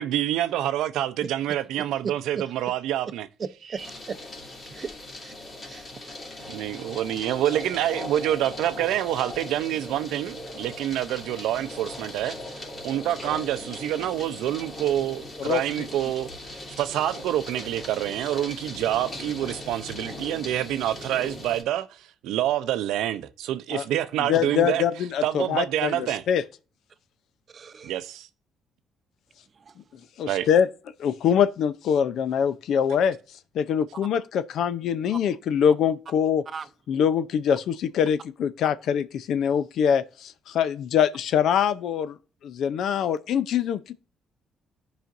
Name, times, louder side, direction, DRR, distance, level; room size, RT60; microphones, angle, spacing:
voice 1, 0.0-3.3 6.5-24.8 25.2-26.2 27.8-28.3 30.3-30.5, right 12 dB, 90° right, 0.5 m, -27 dB
voice 2, 3.4-4.2 4.7-4.9 5.2-5.4 5.7-6.5 27.5-27.9 29.7-29.8 36.5-36.7, right 5 dB, 45° right, 0.6 m, -37 dB
sound 1, 3.8-21.6, left 1 dB, 40° left, 2.6 m, -39 dB
voice 3, 15.4-15.9 23.7-23.8 24.2-26.4 30.2-30.7 31.0-33.2 33.5-36.4 36.9-42.2 42.4-43.9, left 8 dB, 75° left, 0.5 m, -24 dB
15.0 x 5.0 x 2.5 m
cardioid pair, 90°, 0 cm